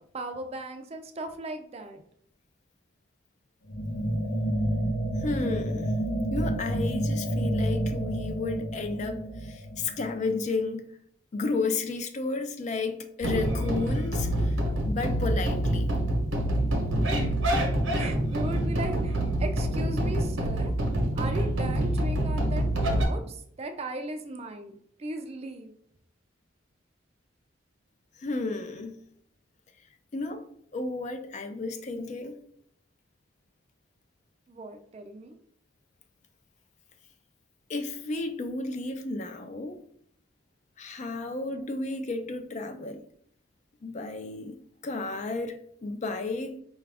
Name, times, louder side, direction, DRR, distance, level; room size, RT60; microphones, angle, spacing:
voice 1, 0.1-2.0 17.1-17.4 17.9-20.7 21.1-25.8 34.5-35.4, right 2 dB, 30° right, 0.4 m, -37 dB
sound 1, 3.7-10.4, right 1 dB, 90° left, 0.8 m, -29 dB
voice 2, 5.2-5.9 6.3-10.9 11.3-14.6 14.8-15.9 28.2-29.0 30.1-30.4 30.7-32.4 37.7-39.8 40.8-43.0 43.8-46.6, left 3 dB, 35° left, 0.4 m, -32 dB
sound 2, 13.2-23.0, right 1 dB, 80° right, 0.8 m, -26 dB
4.9 x 2.4 x 3.3 m
head